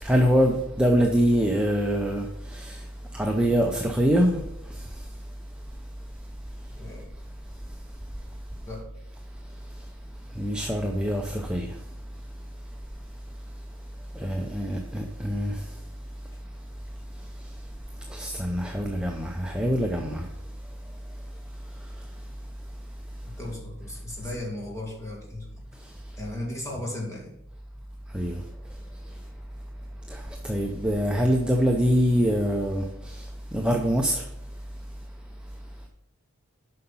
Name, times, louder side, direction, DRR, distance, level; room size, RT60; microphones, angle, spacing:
voice 1, 0.0-2.3 2.5-2.8 3.1-4.4 10.4-11.7 14.2-15.5 18.1-20.2 28.1-28.4 30.1-32.8 33.5-34.2, equal, 5° right, 0.5 m, -24 dB
voice 2, 6.8-7.2 8.7-8.9 23.2-25.6 26.2-27.4, left 1 dB, 15° left, 1.9 m, -36 dB
7.7 x 5.7 x 5.5 m
head